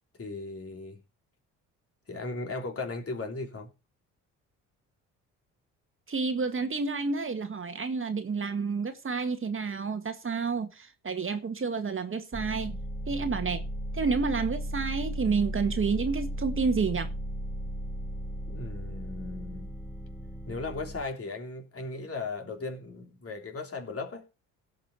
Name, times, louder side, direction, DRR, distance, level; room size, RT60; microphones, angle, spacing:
voice 1, 0.2-1.0 2.1-3.7 13.1-13.3 18.5-19.7 20.5-24.2, left 3 dB, 40° left, 3.4 m, -37 dB
voice 2, 6.1-12.8 13.1-13.6 13.9-17.1, right 4 dB, 35° right, 1.7 m, -30 dB
sound 1, 12.3-21.0, equal, ahead, 2.1 m, -36 dB
17.0 x 6.0 x 4.4 m
hypercardioid pair, 55°, 37 cm